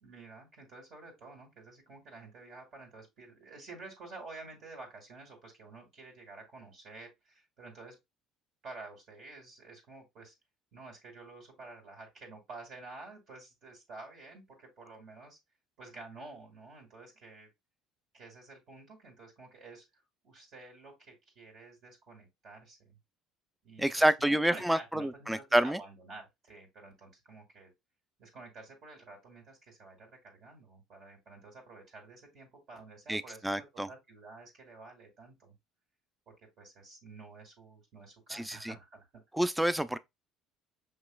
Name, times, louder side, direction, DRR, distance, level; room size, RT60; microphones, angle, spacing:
voice 1, 0.0-8.0 8.6-10.3 10.7-15.4 15.8-17.5 18.1-19.8 20.2-22.9 23.6-23.9 24.2-27.7 28.2-30.1 30.4-35.5 36.3-39.0, right 3 dB, 60° right, 2.3 m, -50 dB
voice 2, 23.8-25.8 33.1-33.9 38.3-38.7 39.3-40.0, right 1 dB, 5° right, 0.4 m, -28 dB
5.7 x 3.0 x 2.3 m
supercardioid pair, 90°, 0 cm